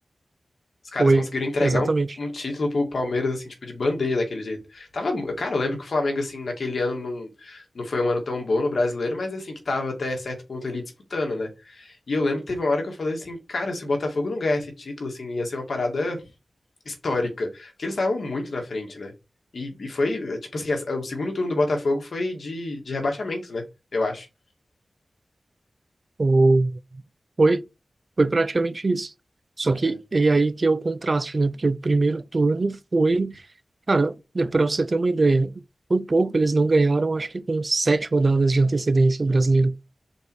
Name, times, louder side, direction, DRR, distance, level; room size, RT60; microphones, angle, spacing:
voice 1, 0.9-1.9 2.2-10.8 11.1-16.2 16.9-19.1 19.5-23.6 23.9-24.3 29.8-30.0, left 2 dB, 70° left, 2.1 m, -27 dB
voice 2, 1.6-2.1 26.2-26.8 27.4-27.6 28.2-29.1 29.6-33.4 33.9-35.6 35.9-39.8, right 3 dB, 45° right, 0.5 m, -21 dB
5.2 x 4.4 x 4.7 m
wide cardioid pair, 80°, 0 cm